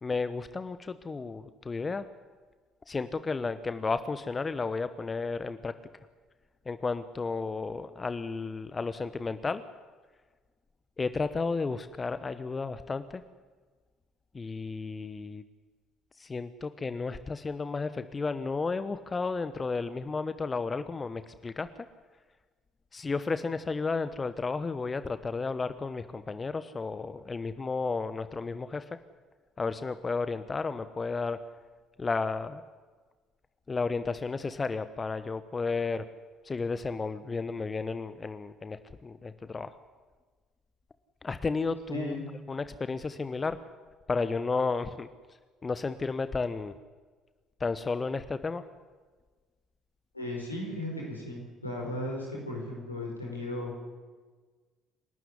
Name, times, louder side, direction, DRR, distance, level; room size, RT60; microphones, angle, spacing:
voice 1, 0.0-2.1 2.9-5.7 6.7-9.6 11.0-13.2 14.3-15.4 16.2-21.7 22.9-28.8 29.6-31.4 32.0-32.6 33.7-36.0 36.4-39.7 41.2-42.2 42.5-43.6 44.1-45.1 45.6-46.7 47.6-48.6, left 4 dB, 25° left, 12 dB, 1.1 m, -32 dB
voice 2, 41.9-42.2 50.1-53.8, left 1 dB, 90° left, -1 dB, 4.8 m, -36 dB
27.0 x 12.5 x 9.8 m, 1.4 s
figure-of-eight pair, 50°, 0 cm